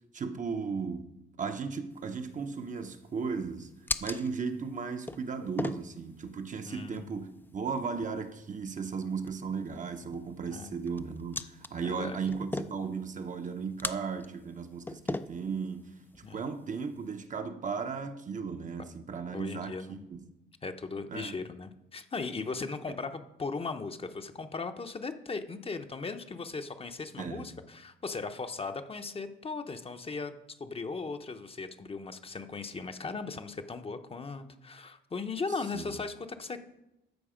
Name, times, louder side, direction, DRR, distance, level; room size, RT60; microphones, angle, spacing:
voice 1, 0.1-3.7 4.0-20.2 21.1-21.4 22.9-23.0 27.2-27.5 35.7-35.9, right 5 dB, 40° right, 0.8 m, -36 dB
sound 1, 1.9-17.3, left 2 dB, 10° left, 0.4 m, -42 dB
voice 2, 6.7-7.2 10.5-10.7 11.8-12.2 16.2-16.5 19.3-20.1 20.6-36.6, left 4 dB, 30° left, 0.7 m, -38 dB
13.0 x 4.7 x 5.0 m
cardioid pair, 90°, 20 cm